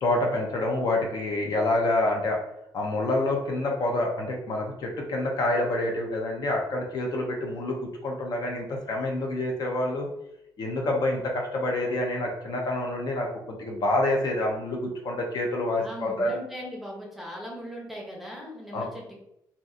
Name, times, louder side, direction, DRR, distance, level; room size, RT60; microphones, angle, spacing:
voice 1, 0.0-2.4 2.7-10.1 10.6-16.4 18.7-18.9, left 2 dB, 60° left, 1 dB, 0.6 m, -27 dB
voice 2, 15.8-19.2, equal, ahead, -2 dB, 0.6 m, -39 dB
2.7 x 2.4 x 2.4 m, 0.79 s
cardioid pair, 135°, 8 cm